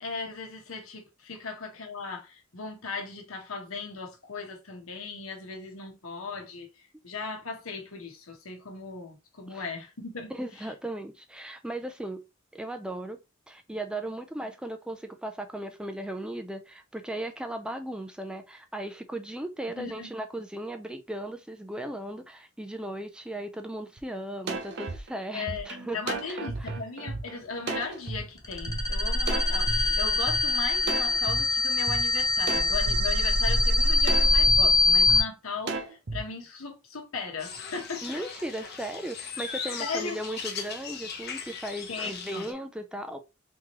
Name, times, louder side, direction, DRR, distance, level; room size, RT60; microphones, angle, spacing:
voice 1, 0.0-6.7 7.0-10.3 10.6-10.7 19.8-20.1 25.3-38.0 39.8-40.2 41.9-42.5, left 4 dB, 80° left, 1.0 m, -37 dB
voice 2, 10.3-12.3 12.5-13.2 13.5-26.7 38.0-43.2, right 1 dB, 5° right, 0.3 m, -37 dB
sound 1, 24.0-24.1 24.5-28.2 28.7-28.8 29.3-30.4 30.9-31.4 31.9-32.0 32.5-33.0 33.5-33.6 34.1-34.6 35.1-35.2 35.7-36.2, right 3 dB, 55° right, 0.8 m, -34 dB
sound 2, 28.4-35.2, left 2 dB, 20° left, 0.7 m, -23 dB
sound 3, 37.4-42.5, left 6 dB, 50° left, 0.8 m, -38 dB
3.6 x 3.0 x 2.9 m
head